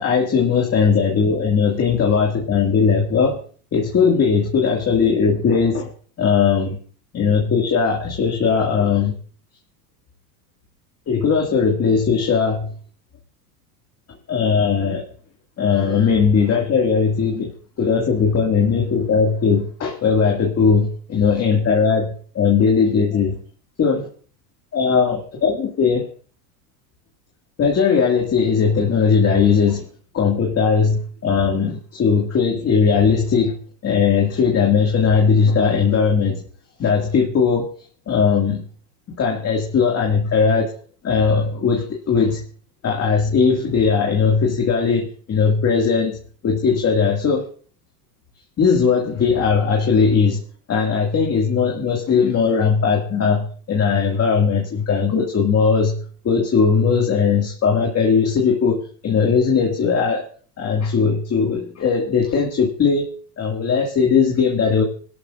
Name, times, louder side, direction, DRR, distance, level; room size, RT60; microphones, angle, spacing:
voice 1, 0.0-3.4 3.7-5.9 6.2-6.8 7.1-9.1 11.1-12.7 14.3-15.0 15.6-17.5 17.8-23.4 23.8-24.0 24.7-26.1 27.6-29.8 30.1-33.5 33.8-36.4 36.8-37.7 38.1-38.6 39.2-40.7 41.0-42.4 42.8-46.2 46.4-47.4 48.6-50.4 50.7-56.0 56.2-60.2 60.6-63.1 63.4-64.8, left 5 dB, 30° left, 0 dB, 2.1 m, -18 dB
25.5 x 12.0 x 2.5 m, 0.43 s
supercardioid pair, 105°, 46 cm